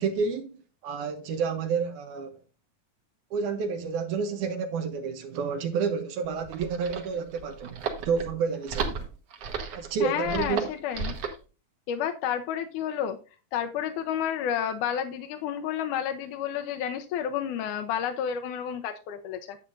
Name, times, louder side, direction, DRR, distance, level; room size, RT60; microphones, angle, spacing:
voice 1, 0.0-2.4 3.3-9.1 9.7-10.7, right 5 dB, 75° right, 2.0 m, -30 dB
sound 1, 6.3-11.4, right 5 dB, 60° right, 1.9 m, -34 dB
voice 2, 10.0-11.1 11.9-13.2 13.5-19.6, left 9 dB, 75° left, 2.0 m, -30 dB
10.0 x 8.2 x 2.5 m
omnidirectional pair, 4.1 m